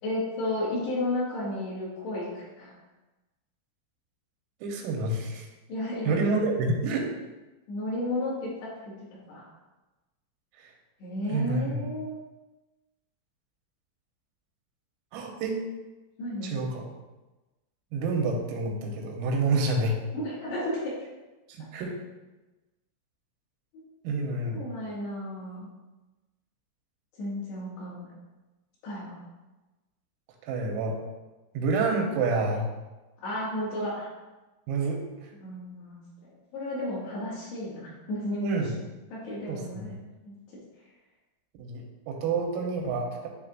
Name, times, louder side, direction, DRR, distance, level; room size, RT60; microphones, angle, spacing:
voice 1, 0.0-2.7 5.7-6.2 7.7-8.7 9.3-9.5 11.0-12.2 16.2-16.6 20.1-20.9 24.3-25.7 27.2-28.1 28.8-29.2 33.2-34.1 35.4-36.0 36.5-38.7 39.1-40.0 40.2-40.4, left 1 dB, 65° left, -9 dB, 3.8 m, -33 dB
voice 2, 4.6-5.5 6.1-7.1 10.6-10.7 11.3-11.8 15.1-15.6 16.5-16.9 17.9-20.0 21.5-21.9 24.1-24.6 30.5-31.0 31.6-32.7 34.7-35.3 38.4-38.7 39.5-39.9 41.6-43.3, right 3 dB, 90° right, 1 dB, 3.5 m, -28 dB
10.5 x 3.6 x 2.5 m, 1.1 s
omnidirectional pair, 5.7 m